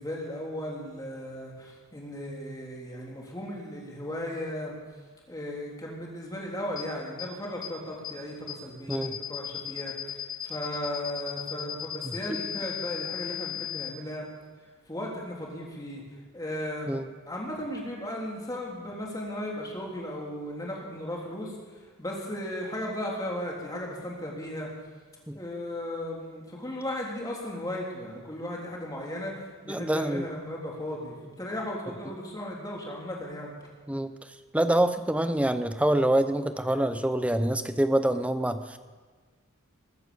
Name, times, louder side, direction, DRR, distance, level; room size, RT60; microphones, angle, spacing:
voice 1, 0.0-4.8 5.3-10.2 10.4-14.3 14.9-16.0 16.3-17.0 17.3-21.5 22.0-24.7 25.3-33.5, left 1 dB, 20° left, -3 dB, 3.2 m, -36 dB
sound 1, 6.8-6.9 7.2-7.3 7.6-7.7 8.0-8.1 8.5-8.6 8.9-13.9, left 11 dB, 65° left, 2.8 m, -35 dB
voice 2, 12.0-12.4 16.9-17.0 25.3-25.4 29.7-30.2 33.9-34.1 34.5-38.8, right 1 dB, 5° right, 10 dB, 0.7 m, -26 dB
20.0 x 8.7 x 6.9 m, 1.5 s
head